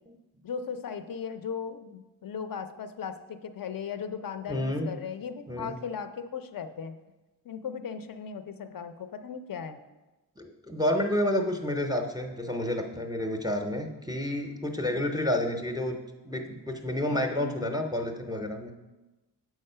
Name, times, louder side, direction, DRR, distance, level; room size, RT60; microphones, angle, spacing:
voice 1, 0.4-7.0 7.4-9.8 14.8-15.0 17.4-17.8, left 6 dB, 50° left, 9 dB, 0.5 m, -37 dB
voice 2, 4.5-4.9 5.5-5.8 10.4-18.7, left 1 dB, 10° right, 4 dB, 0.5 m, -30 dB
7.1 x 4.8 x 5.5 m, 1.1 s
wide cardioid pair, 140°, 43 cm